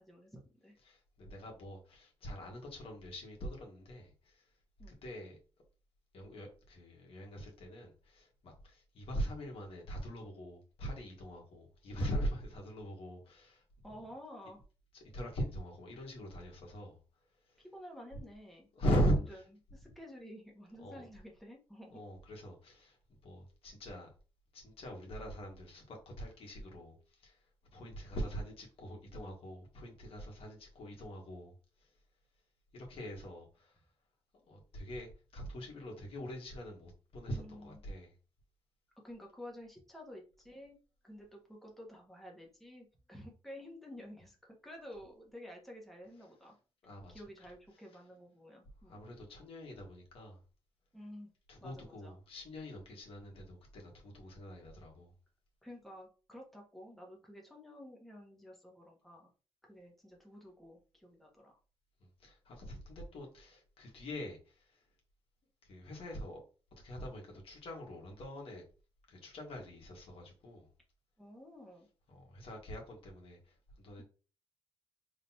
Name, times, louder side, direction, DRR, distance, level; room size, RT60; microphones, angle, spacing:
voice 1, 0.0-0.8 4.8-5.0 13.8-14.6 17.6-18.7 19.3-19.4 19.7-22.0 37.3-37.8 39.0-40.8 41.0-46.5 47.1-49.0 50.9-51.3 51.6-52.1 55.6-59.3 59.6-61.6 71.2-71.9 74.0-74.1, equal, ahead, 1.3 m, -51 dB
voice 2, 0.8-4.5 4.9-5.4 6.1-13.6 14.9-17.0 17.5-17.6 18.7-19.4 20.8-21.0 21.9-23.0 23.2-24.1 24.5-27.4 27.7-31.5 31.8-31.9 32.7-33.8 34.3-38.1 46.8-47.2 48.8-50.4 51.5-55.1 62.0-64.8 65.6-66.4 66.8-68.6 69.1-70.7 72.1-74.0, equal, 70° left, 1.7 m, -41 dB
3.8 x 3.6 x 2.8 m
cardioid pair, 105°, 10 cm